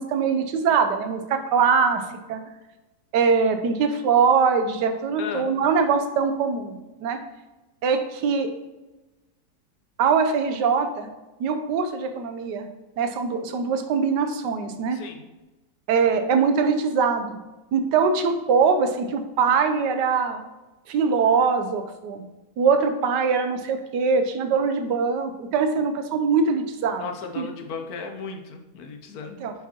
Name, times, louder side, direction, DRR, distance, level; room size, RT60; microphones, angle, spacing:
voice 1, 0.0-2.0 2.3-2.4 3.1-7.2 7.8-8.5 10.0-11.1 11.4-12.7 13.0-15.0 15.9-17.4 17.7-20.4 20.9-22.2 22.6-27.0 27.4-27.5 29.4-29.5, right 5 dB, 90° right, 7 dB, 1.3 m, -22 dB
voice 2, 5.2-5.5 14.9-15.3 27.0-29.4, left 5 dB, 70° left, 5 dB, 1.1 m, -35 dB
9.2 x 4.7 x 2.9 m, 1.1 s
omnidirectional pair, 1.8 m